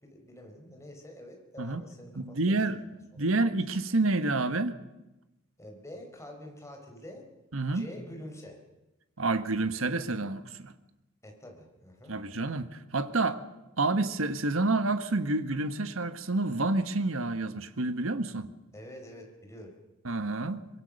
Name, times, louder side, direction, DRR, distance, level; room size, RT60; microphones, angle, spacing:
voice 1, 0.0-3.3 5.6-7.3 7.7-8.6 11.2-12.1 18.7-19.7, left 1 dB, 15° left, 2 dB, 5.0 m, -47 dB
voice 2, 2.2-2.8 3.2-4.7 7.5-7.8 9.2-10.7 12.1-13.4 13.8-18.5 20.0-20.7, right 2 dB, 75° right, 10 dB, 1.4 m, -28 dB
24.5 x 22.5 x 6.6 m, 0.97 s
head